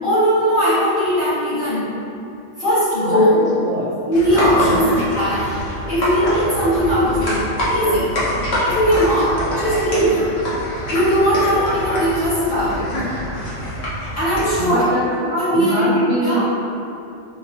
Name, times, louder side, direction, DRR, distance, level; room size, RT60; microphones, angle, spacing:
voice 1, 0.0-1.8 2.6-3.3 4.1-4.8 5.1-5.5 5.9-8.1 8.6-10.2 10.9-12.9 14.1-14.9 15.3-16.4, equal, 50° left, -15 dB, 1.8 m, -19 dB
voice 2, 3.0-4.1 4.6-5.0 14.6-15.1 15.5-16.4, equal, 60° right, -5 dB, 1.1 m, -24 dB
sound 1, 4.1-14.5, equal, 65° left, 1.3 m, -25 dB
5.6 x 2.9 x 2.8 m, 2.6 s
omnidirectional pair, 1.2 m